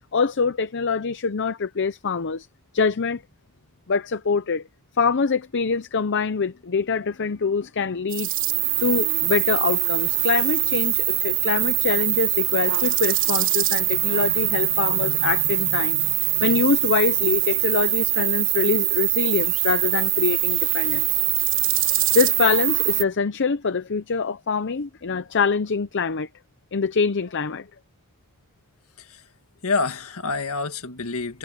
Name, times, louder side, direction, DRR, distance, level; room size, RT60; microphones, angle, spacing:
voice 1, 0.1-2.5 2.7-3.2 3.9-4.6 5.0-8.3 8.8-21.2 22.1-26.3 26.7-27.7, left 5 dB, 55° left, 0.7 m, -24 dB
sound 1, 8.1-23.0, right 16 dB, 60° right, 3.0 m, -23 dB
voice 2, 29.6-31.4, left 4 dB, 70° left, 2.0 m, -27 dB
head